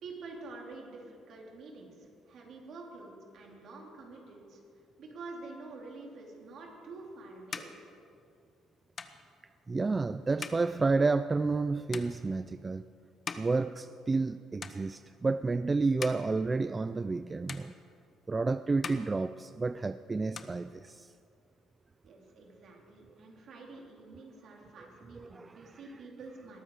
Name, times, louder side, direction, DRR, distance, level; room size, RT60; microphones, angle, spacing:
voice 1, 0.0-4.6 5.0-7.7 22.0-26.6, right 3 dB, 55° right, 0 dB, 3.5 m, -48 dB
sound 1, 6.6-14.3 14.6-15.3 15.7-17.2 17.5-18.4 18.7-19.9 20.1-21.3, left 5 dB, 35° left, 1.0 m, -46 dB
voice 2, 9.7-12.8 13.4-17.7 18.3-21.1 25.1-25.8, right 3 dB, 20° right, 13 dB, 0.3 m, -30 dB
20.0 x 13.0 x 4.9 m, 2.5 s
cardioid pair, 115°, 0 cm